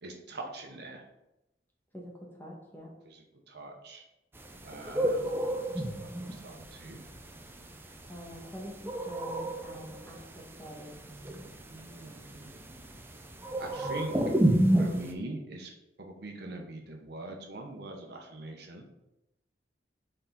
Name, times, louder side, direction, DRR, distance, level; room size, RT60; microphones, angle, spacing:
voice 1, 0.0-1.0 3.1-4.0 4.6-5.8 6.2-7.0 10.0-10.1 11.7-12.5 13.6-14.2 14.8-15.7 16.0-18.9, right 2 dB, 65° right, 2 dB, 1.0 m, -42 dB
voice 2, 1.9-2.9 8.1-11.0, equal, 10° left, -2 dB, 1.3 m, -46 dB
sound 1, 4.4-15.1, right 1 dB, 15° right, 0.5 m, -31 dB
6.7 x 3.9 x 3.8 m, 0.93 s
head